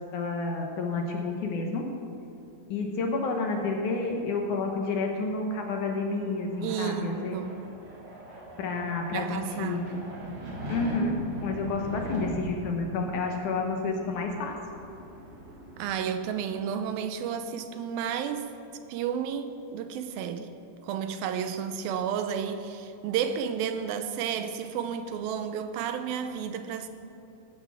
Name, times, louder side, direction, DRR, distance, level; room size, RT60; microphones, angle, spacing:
voice 1, 0.1-1.9 2.7-7.4 8.6-9.8 10.7-14.6, left 3 dB, 70° left, 2 dB, 2.2 m, -30 dB
sound 1, 5.5-16.8, right 1 dB, 55° right, 3.5 m, -41 dB
voice 2, 6.6-7.7 9.1-10.1 15.8-18.5 18.9-20.5 20.8-26.9, right 7 dB, 80° right, 9 dB, 2.5 m, -32 dB
16.0 x 12.0 x 3.6 m, 2.9 s
omnidirectional pair, 4.2 m